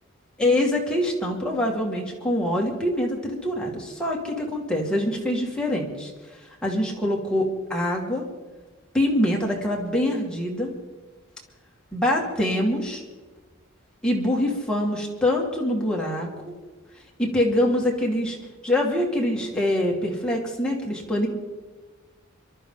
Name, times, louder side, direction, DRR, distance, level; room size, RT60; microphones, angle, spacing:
voice 1, 0.4-6.1 6.4-8.2 8.9-10.7 11.9-13.0 14.0-16.5 17.2-18.4 18.6-21.3, left 1 dB, 5° left, -2 dB, 2.2 m, -24 dB
26.0 x 12.5 x 4.0 m, 1.3 s
head